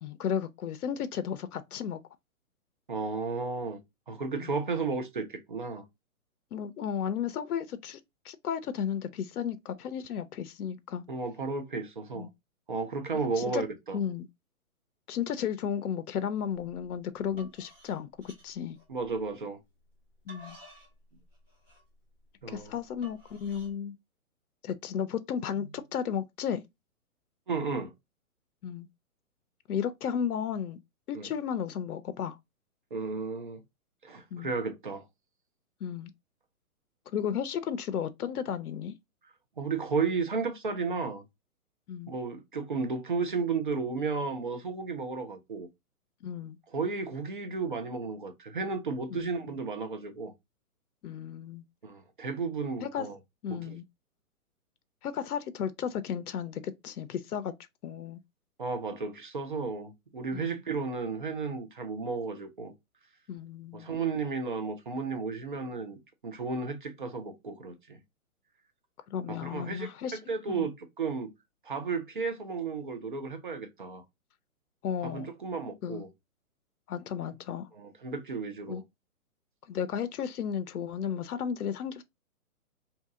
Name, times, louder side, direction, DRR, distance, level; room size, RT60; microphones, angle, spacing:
voice 1, 0.0-2.0 4.4-4.5 6.5-8.0 8.2-11.0 12.1-12.3 13.3-13.6 13.9-14.3 15.1-18.8 20.3-20.6 22.5-24.0 24.6-26.6 28.6-28.9 29.7-30.8 31.1-32.4 34.3-34.5 35.8-36.1 37.1-38.9 41.9-42.1 46.2-46.6 49.1-49.3 51.0-51.6 52.8-53.1 53.4-53.8 55.0-57.5 57.8-58.2 60.3-60.6 63.3-63.9 69.1-70.2 70.5-70.7 74.8-75.3 75.8-76.0 76.9-77.7 78.7-78.8 79.7-82.0, left 8 dB, 90° left, 0.6 m, -34 dB
voice 2, 2.9-3.8 4.1-5.8 11.1-12.3 12.7-14.0 18.9-19.6 22.4-22.7 27.5-27.9 31.1-31.3 32.9-33.6 34.0-35.0 39.6-41.2 42.1-45.7 46.7-50.3 51.8-53.2 53.5-53.8 58.6-62.7 63.7-68.0 69.3-71.3 71.6-74.0 75.0-76.1 77.7-78.8, right 4 dB, 35° right, 0.4 m, -33 dB
sound 1, 16.5-16.8 17.2-19.3 19.9-23.7, right 1 dB, 15° right, 1.6 m, -54 dB
2.8 x 2.7 x 3.5 m
hypercardioid pair, 165°, 43 cm